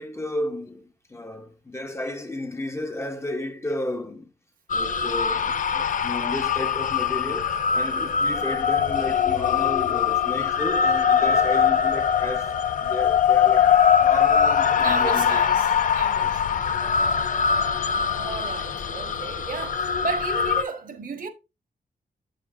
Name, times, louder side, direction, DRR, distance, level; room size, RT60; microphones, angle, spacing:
voice 1, 0.0-4.3 4.7-12.5 12.8-13.7 14.0-15.4, left 1 dB, 15° left, 0.6 m, -33 dB
sound 1, 4.7-20.6, left 7 dB, 55° left, 0.5 m, -22 dB
voice 2, 14.8-16.5 18.1-21.3, right 5 dB, 60° right, 1.1 m, -34 dB
8.1 x 6.6 x 2.4 m
wide cardioid pair, 165°, 16 cm